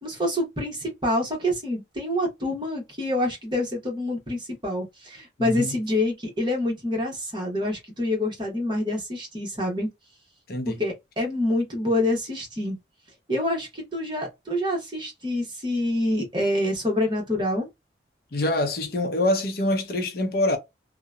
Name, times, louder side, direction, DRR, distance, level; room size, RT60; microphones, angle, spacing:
voice 1, 0.0-9.9 10.6-12.8 13.3-17.7, left 1 dB, 25° right, 1.0 m, -27 dB
voice 2, 5.4-5.8 10.5-10.8 18.3-20.6, left 1 dB, 55° left, 0.6 m, -25 dB
2.8 x 2.1 x 2.3 m
head